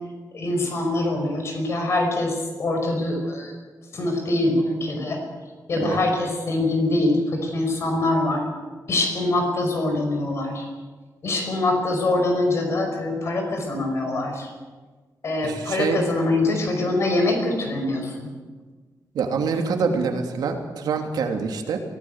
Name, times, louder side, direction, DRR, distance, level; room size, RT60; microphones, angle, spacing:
voice 1, 0.3-3.5 3.9-5.2 5.7-8.4 8.9-10.6 11.2-14.5 15.2-18.3, left 2 dB, 40° left, 3 dB, 5.5 m, -24 dB
voice 2, 15.4-16.0 19.1-21.8, right 5 dB, 80° right, 4 dB, 2.9 m, -25 dB
23.0 x 17.0 x 8.0 m, 1.4 s
wide cardioid pair, 175°, 7 cm